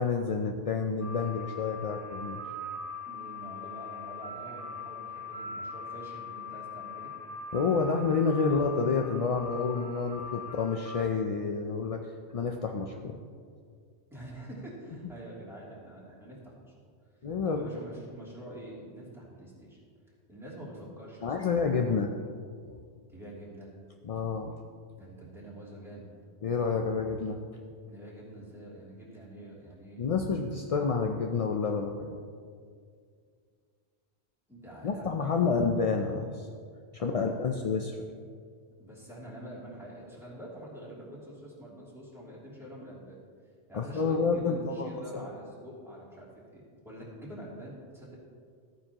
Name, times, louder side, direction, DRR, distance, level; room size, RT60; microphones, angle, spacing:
voice 1, 0.0-2.4 7.5-12.0 12.3-13.2 17.2-17.7 21.2-22.1 24.0-24.6 26.4-27.4 30.0-32.2 34.8-36.5 36.9-38.0 43.7-44.9, left 5 dB, 50° left, 3 dB, 0.4 m, -29 dB
sound 1, 1.0-11.0, left 3 dB, 20° right, 2.1 m, -41 dB
voice 2, 3.1-7.1 14.1-16.7 17.4-19.8 20.3-21.6 21.8-22.0 23.1-23.7 25.0-26.1 27.8-30.0 34.5-35.5 37.0-37.6 38.8-43.2 43.7-48.2, right 1 dB, ahead, -7 dB, 2.8 m, -46 dB
14.0 x 9.2 x 2.9 m, 2.2 s
omnidirectional pair, 1.2 m